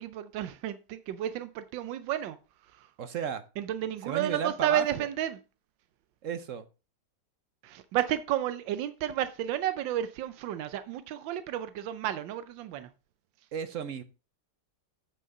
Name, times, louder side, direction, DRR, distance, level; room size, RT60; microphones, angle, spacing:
voice 1, 0.0-2.4 2.7-2.9 3.6-5.4 7.6-12.9, right 11 dB, 90° right, 1.4 m, -32 dB
voice 2, 3.0-3.4 4.0-5.1 6.2-6.7 13.5-14.0, right 7 dB, 60° right, 0.9 m, -34 dB
8.4 x 5.8 x 5.3 m
omnidirectional pair, 2.0 m